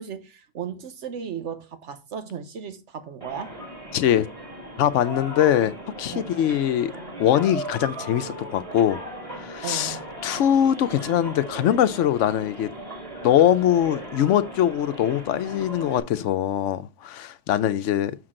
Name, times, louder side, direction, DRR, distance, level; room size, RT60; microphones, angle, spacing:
voice 1, 0.0-3.6 6.1-6.3 9.6-10.0, right 7 dB, 75° right, 1.3 m, -35 dB
sound 1, 3.2-16.0, right 1 dB, 30° right, 2.1 m, -37 dB
voice 2, 3.9-4.3 4.8-6.9 7.2-9.0 9.4-10.0 10.2-12.7 13.2-18.2, left 10 dB, 85° left, 1.0 m, -22 dB
6.5 x 6.1 x 3.7 m
omnidirectional pair, 1.2 m